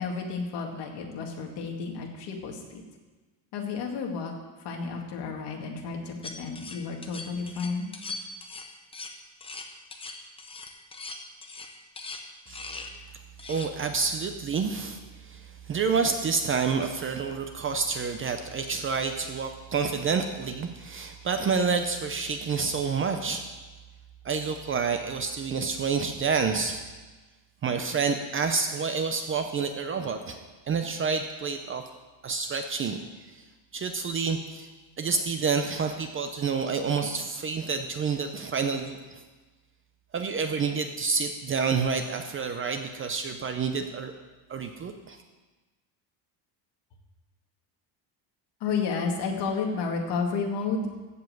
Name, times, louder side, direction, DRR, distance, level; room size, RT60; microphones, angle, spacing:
voice 1, 0.0-2.8 3.5-4.3 4.6-7.9 48.6-50.9, left 5 dB, 55° left, 1 dB, 2.1 m, -31 dB
sound 1, 6.2-12.9 13.4-13.7, left 3 dB, 10° left, 0.7 m, -40 dB
voice 2, 13.5-15.0 15.3-23.4 24.2-26.8 27.6-31.8 32.2-33.0 33.7-34.7 35.0-39.2 40.1-44.1 44.5-45.2, right 5 dB, 25° right, 6 dB, 0.5 m, -28 dB
15.0 x 5.4 x 7.8 m, 1.2 s
cardioid pair, 175°, 48 cm